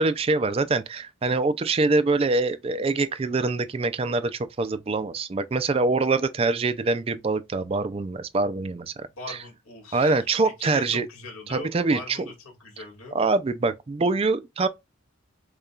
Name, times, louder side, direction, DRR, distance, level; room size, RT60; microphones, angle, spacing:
voice 1, 0.0-9.4 9.9-11.1 11.5-12.2 13.1-14.7, right 3 dB, 25° right, 0.3 m, -24 dB
voice 2, 9.2-12.3 12.6-13.2, left 2 dB, 90° left, 1.9 m, -40 dB
6.6 x 2.3 x 2.3 m
head